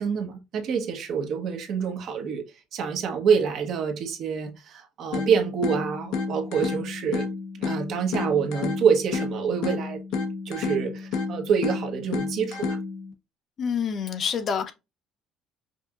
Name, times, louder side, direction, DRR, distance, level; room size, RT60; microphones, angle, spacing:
voice 1, 0.0-2.4 2.7-7.3 7.6-12.8, right 6 dB, 55° right, 1.0 m, -26 dB
sound 1, 5.1-13.1, left 4 dB, 80° left, 0.9 m, -31 dB
voice 2, 13.6-14.7, left 7 dB, 40° left, 0.7 m, -27 dB
5.4 x 2.7 x 2.4 m
cardioid pair, 135°, 0 cm